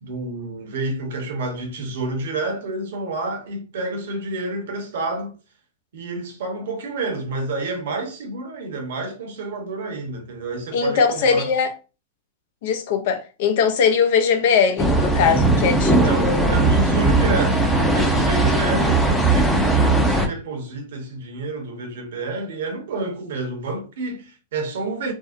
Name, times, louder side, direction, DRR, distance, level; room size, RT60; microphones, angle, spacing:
voice 1, 0.0-5.4 5.9-11.5 16.0-25.1, right 3 dB, 65° right, 0.8 m, -29 dB
voice 2, 10.7-11.7 12.6-16.6, left 6 dB, 55° left, 0.5 m, -20 dB
sound 1, 14.8-20.3, right 2 dB, 5° left, 0.5 m, -18 dB
2.6 x 2.0 x 2.5 m
hypercardioid pair, 100°, 0 cm